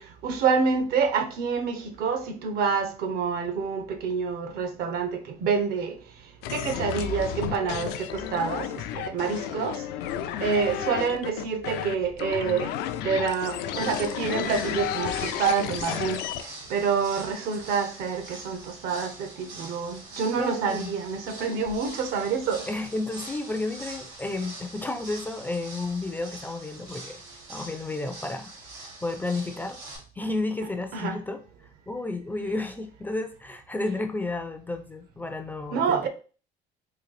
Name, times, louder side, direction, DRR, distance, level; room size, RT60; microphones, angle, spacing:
voice 1, 0.0-6.0 6.5-9.8 10.4-12.7 13.0-16.2 16.7-22.7 30.9-31.2 35.7-36.1, right 5 dB, 65° right, 0.7 m, -27 dB
sound 1, 6.4-16.4, left 10 dB, 85° left, 0.4 m, -32 dB
sound 2, 13.6-30.0, right 2 dB, 85° right, 1.7 m, -44 dB
voice 2, 20.4-20.9 22.6-27.2 27.5-28.5 28.8-29.8 30.2-31.4 31.9-36.1, left 2 dB, 10° left, 0.3 m, -32 dB
3.9 x 2.4 x 3.1 m
cardioid pair, 135°, 17 cm